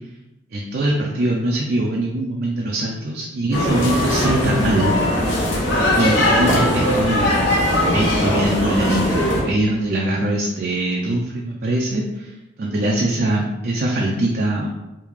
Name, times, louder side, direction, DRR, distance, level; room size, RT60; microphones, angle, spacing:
voice 1, 0.5-4.9 6.0-7.5 7.9-14.7, right 1 dB, 50° right, -2 dB, 0.4 m, -22 dB
sound 1, 3.5-9.4, left 1 dB, 75° left, 0.9 m, -19 dB
3.5 x 2.7 x 3.1 m, 0.99 s
head